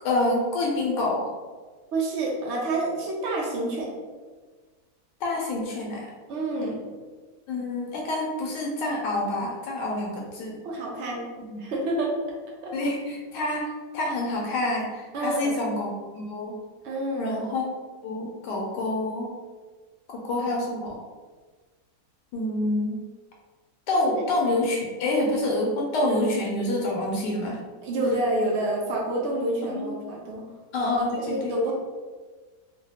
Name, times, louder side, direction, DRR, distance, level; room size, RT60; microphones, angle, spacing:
voice 1, 0.0-1.3 5.2-6.1 7.5-10.6 11.5-11.6 12.7-16.6 17.2-17.7 18.0-19.3 20.1-21.0 22.3-23.0 23.9-27.6 29.7-29.9 30.7-31.6, left 2 dB, 85° left, -1 dB, 1.2 m, -27 dB
voice 2, 1.9-3.9 6.3-6.8 10.6-11.2 11.6-12.1 12.6-12.7 15.1-15.6 16.8-17.4 24.1-24.2 27.8-30.4 31.3-31.7, right 1 dB, 90° right, -3 dB, 0.6 m, -28 dB
3.1 x 2.2 x 2.7 m, 1.4 s
omnidirectional pair, 1.8 m